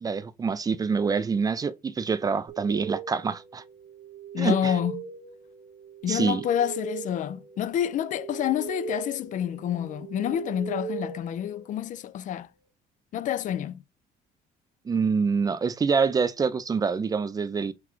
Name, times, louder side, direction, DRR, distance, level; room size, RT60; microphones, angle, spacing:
voice 1, 0.0-3.6 4.4-4.8 6.1-6.4 14.9-17.7, right 5 dB, 20° right, 0.3 m, -26 dB
sound 1, 2.5-12.2, right 7 dB, 85° right, 1.4 m, -40 dB
voice 2, 4.3-4.9 6.0-12.5 13.1-13.8, left 10 dB, 50° left, 0.4 m, -28 dB
5.8 x 2.3 x 3.1 m
cardioid pair, 110°, 17 cm